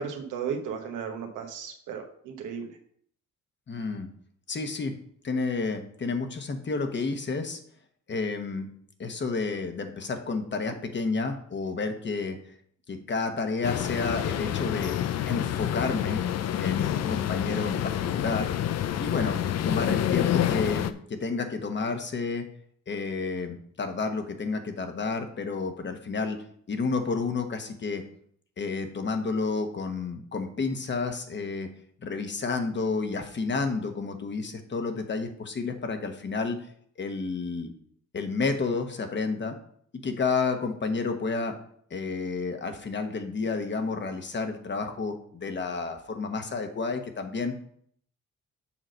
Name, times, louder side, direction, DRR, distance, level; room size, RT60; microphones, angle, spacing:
voice 1, 0.0-2.7, right 6 dB, 85° right, 4 dB, 1.4 m, -35 dB
voice 2, 3.7-4.1 4.5-4.9 5.2-7.6 8.1-8.7 9.0-12.5 12.9-14.9 15.3-16.2 16.6-18.5 19.0-22.4 22.9-28.0 28.6-31.7 32.0-36.6 37.0-37.7 38.1-39.6 40.0-41.5 41.9-47.5, left 4 dB, 35° left, 6 dB, 1.2 m, -30 dB
sound 1, 13.6-20.9, left 11 dB, 55° left, 0.5 m, -28 dB
7.1 x 3.9 x 6.4 m, 0.63 s
cardioid pair, 90°, 30 cm